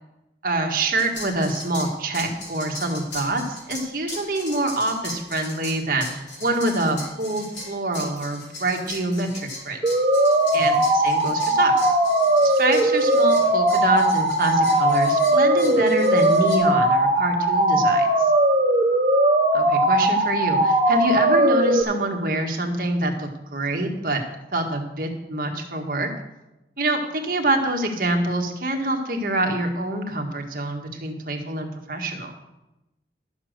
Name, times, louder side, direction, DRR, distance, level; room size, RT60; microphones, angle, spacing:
voice 1, 0.4-9.8 10.5-12.0 12.4-18.1 19.5-24.2 24.5-26.1 26.8-32.3, right 2 dB, 50° right, 2 dB, 1.7 m, -25 dB
sound 1, 1.0-16.6, left 2 dB, 90° left, 3.7 m, -38 dB
sound 2, 9.8-21.8, right 1 dB, 15° right, 2.4 m, -19 dB
12.0 x 7.3 x 6.6 m, 0.94 s
head